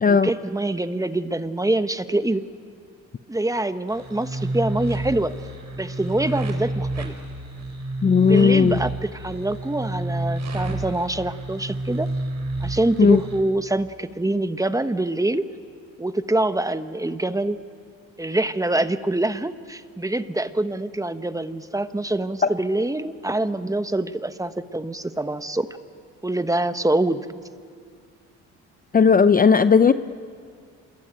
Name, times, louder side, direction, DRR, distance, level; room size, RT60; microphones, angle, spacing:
voice 1, 0.0-2.4 3.3-5.3 5.8-7.1 8.2-12.1 12.6-15.5 16.0-17.6 18.2-25.7 26.2-27.3, right 1 dB, 10° right, 11 dB, 1.2 m, -25 dB
sound 1, 3.9-13.4, right 1 dB, 55° right, 5.3 m, -29 dB
voice 2, 8.0-8.8 13.0-13.2 28.9-29.9, left 5 dB, 25° left, 12 dB, 0.6 m, -15 dB
27.0 x 21.5 x 9.4 m, 2.2 s
cardioid pair, 80°, 33 cm